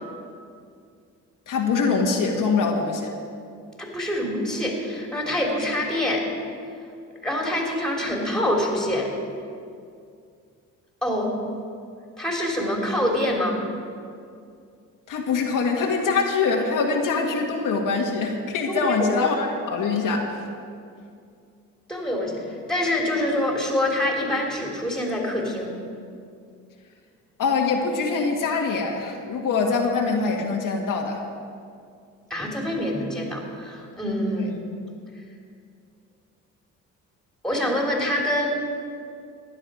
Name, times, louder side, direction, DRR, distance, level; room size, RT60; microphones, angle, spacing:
voice 1, 1.5-3.1 15.1-20.4 27.4-31.2 34.4-34.5, left 4 dB, 65° left, 0 dB, 1.7 m, -24 dB
voice 2, 3.8-6.2 7.2-9.1 11.0-11.3 12.2-13.6 18.7-19.2 21.9-25.8 32.3-34.6 37.4-38.6, left 1 dB, ahead, -1 dB, 3.4 m, -25 dB
15.5 x 11.0 x 5.1 m, 2.4 s
cardioid pair, 95°, 35 cm